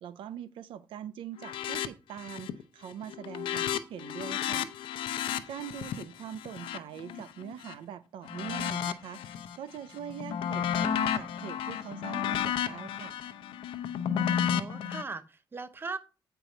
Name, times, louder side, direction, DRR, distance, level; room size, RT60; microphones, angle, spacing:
voice 1, 0.0-4.7 5.5-9.2 9.6-13.1, right 10 dB, 90° right, 0.6 m, -42 dB
sound 1, 1.4-1.9 2.2-2.6 2.9-7.7 8.2-9.6 9.9-15.0, left 9 dB, 85° left, 0.7 m, -32 dB
voice 2, 14.3-16.0, right 4 dB, 25° right, 0.8 m, -39 dB
9.0 x 4.6 x 5.2 m
cardioid pair, 110°, 9 cm